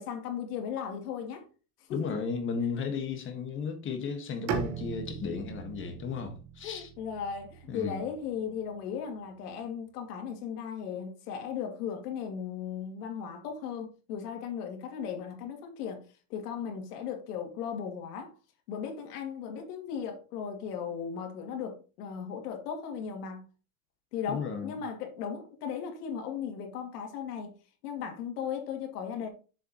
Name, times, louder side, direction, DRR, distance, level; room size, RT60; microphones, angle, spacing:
voice 1, 0.0-1.4 1.9-2.2 6.6-16.0 16.3-18.3 18.7-23.5 24.1-27.5 27.8-29.3, left 7 dB, 85° left, 2.6 m, -37 dB
voice 2, 1.9-6.9 7.7-8.0 24.3-24.8, left 5 dB, 25° left, 1.5 m, -34 dB
Bowed string instrument, 4.5-8.4, right 7 dB, 40° right, 1.5 m, -38 dB
7.1 x 7.0 x 3.0 m
supercardioid pair, 145°, 45 cm